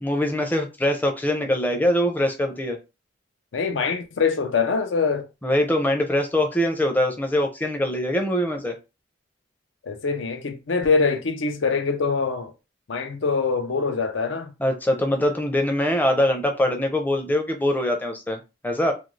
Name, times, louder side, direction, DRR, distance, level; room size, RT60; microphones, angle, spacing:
voice 1, 0.0-2.8 5.4-8.8 14.6-18.9, left 1 dB, 10° left, 0.5 m, -23 dB
voice 2, 3.5-5.3 9.8-12.5 12.9-14.5, left 5 dB, 85° left, 0.6 m, -24 dB
2.5 x 2.3 x 3.1 m
head